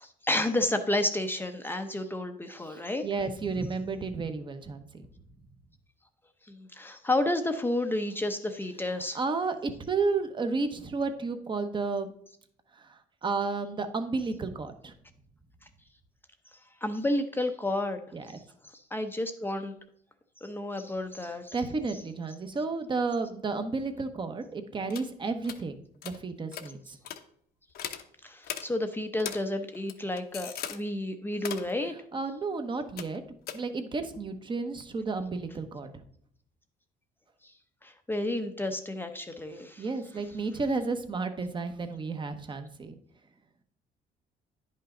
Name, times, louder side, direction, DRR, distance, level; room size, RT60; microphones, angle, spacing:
voice 1, 0.0-3.1 6.5-9.2 16.8-18.0 18.7-19.7 20.4-21.5 28.2-31.9 37.8-39.9, left 1 dB, 10° left, 6 dB, 0.7 m, -31 dB
voice 2, 3.0-4.9 9.1-12.1 12.8-14.9 18.1-18.4 21.5-25.7 26.0-27.0 32.1-33.2 33.5-35.9 39.8-43.0, right 4 dB, 30° right, 8 dB, 1.0 m, -32 dB
sound 1, 24.9-25.1 25.4-25.6 26.0-26.2 26.5-26.7 27.0-27.2 27.7-28.0 28.4-28.6 29.2-29.4 29.7-30.8 31.3-31.7 33.0-33.2 33.5-33.6, left 9 dB, 65° left, 0.9 m, -38 dB
10.0 x 5.6 x 3.8 m, 0.66 s
cardioid pair, 110°, 17 cm